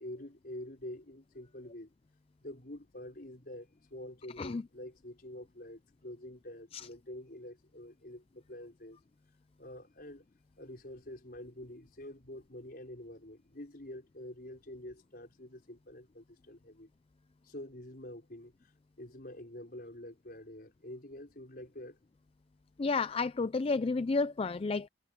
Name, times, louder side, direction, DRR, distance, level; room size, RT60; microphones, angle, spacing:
voice 1, 0.0-1.9 2.4-9.0 9.6-10.3 10.6-16.9 17.4-18.7 19.0-22.0, left 1 dB, 55° left, 5.3 m, -47 dB
voice 2, 22.8-24.9, left 3 dB, 30° left, 0.4 m, -31 dB
head